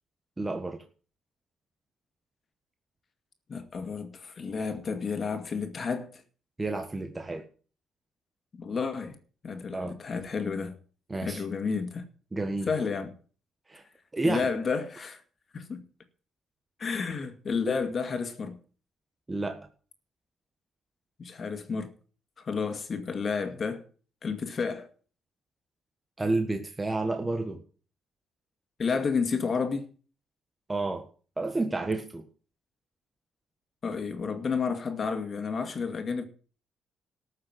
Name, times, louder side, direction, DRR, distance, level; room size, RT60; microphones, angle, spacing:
voice 1, 0.4-0.8 6.6-7.4 9.7-9.9 11.1-11.4 12.3-12.7 13.7-13.8 14.1-14.5 19.3-19.7 26.2-27.6 30.7-31.1 31.4-32.2, right 2 dB, 20° right, 1.4 m, -30 dB
voice 2, 3.5-6.1 8.6-9.2 9.4-10.8 11.2-12.0 12.7-13.1 14.2-15.2 15.5-15.8 16.8-18.6 21.2-21.9 22.4-23.8 24.2-24.9 28.8-29.9 33.8-36.2, left 5 dB, 45° left, 2.2 m, -31 dB
13.5 x 6.6 x 7.7 m
cardioid pair, 90°, 0 cm